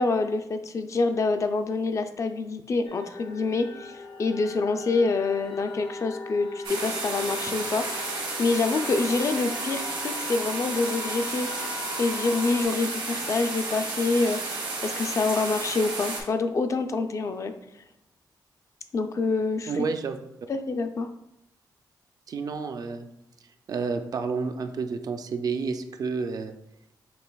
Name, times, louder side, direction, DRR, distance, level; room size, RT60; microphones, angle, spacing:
voice 1, 0.0-8.1 8.4-11.5 12.0-17.5 18.9-19.7 20.5-21.1, left 3 dB, 40° left, 8 dB, 0.3 m, -26 dB
sound 1, 2.8-12.6, left 4 dB, 80° left, 0.6 m, -40 dB
sound 2, 6.6-16.2, right 3 dB, 90° right, 1.5 m, -32 dB
voice 2, 19.7-20.2 22.3-23.1 23.7-26.5, right 5 dB, 55° right, 7 dB, 0.3 m, -30 dB
6.0 x 3.2 x 2.3 m, 0.83 s
wide cardioid pair, 145°, 8 cm